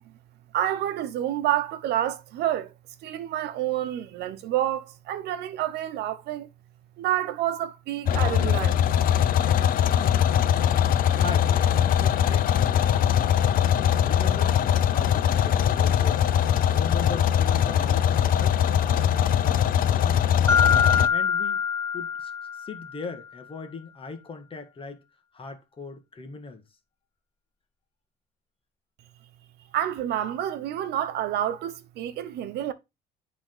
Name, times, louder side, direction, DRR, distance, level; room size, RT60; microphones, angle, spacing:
voice 1, 0.5-2.7 3.0-6.5 7.0-8.8 29.7-32.7, right 12 dB, 75° right, 0.9 m, -28 dB
sound 1, 8.1-21.1, left 10 dB, 55° left, 0.7 m, -21 dB
voice 2, 10.0-10.4 10.9-13.5 14.0-14.6 14.8-16.2 16.7-18.6 18.8-19.6 19.9-20.4 21.1-21.6 21.9-22.3 22.6-25.0 25.3-26.6, left 4 dB, 30° left, 1.7 m, -39 dB
Mallet percussion, 20.5-23.0, left 7 dB, 15° left, 0.6 m, -24 dB
10.0 x 3.7 x 3.9 m
cardioid pair, 110°, 17 cm